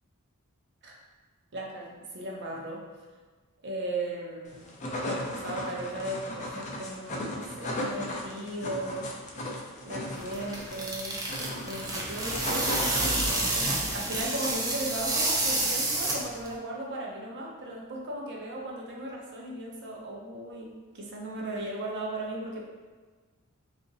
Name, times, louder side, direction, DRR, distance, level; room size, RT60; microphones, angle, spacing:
voice 1, 1.5-2.9 3.6-4.6 5.1-9.1 9.8-11.2 11.6-22.6, right 1 dB, 55° right, -2 dB, 0.6 m, -37 dB
sound 1, 4.5-13.6, left 1 dB, 35° left, 0.5 m, -36 dB
sound 2, 10.2-16.5, right 2 dB, 15° right, 0.4 m, -29 dB
2.8 x 2.5 x 3.9 m, 1.4 s
head